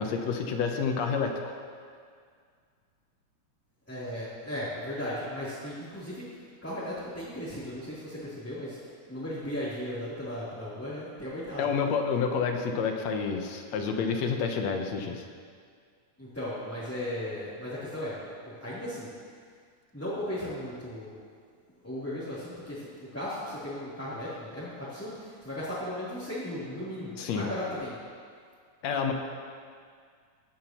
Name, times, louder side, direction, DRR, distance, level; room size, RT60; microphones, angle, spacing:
voice 1, 0.0-1.4 11.6-15.2 27.2-27.5 28.8-29.1, left 5 dB, 70° left, 4 dB, 2.0 m, -29 dB
voice 2, 3.9-6.2 6.6-11.6 16.2-19.1 19.9-21.1 21.8-27.9, left 1 dB, 5° left, -14 dB, 2.9 m, -36 dB
17.5 x 11.0 x 3.0 m, 2.1 s
omnidirectional pair, 3.4 m